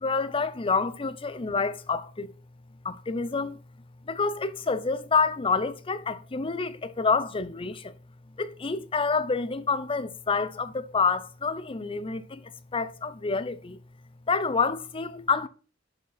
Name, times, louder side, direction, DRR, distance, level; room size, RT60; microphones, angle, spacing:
voice 1, 0.0-2.3 2.8-3.6 4.1-7.9 8.4-13.8 14.3-15.5, left 4 dB, 25° left, 0.5 m, -28 dB
11.0 x 5.1 x 4.0 m
head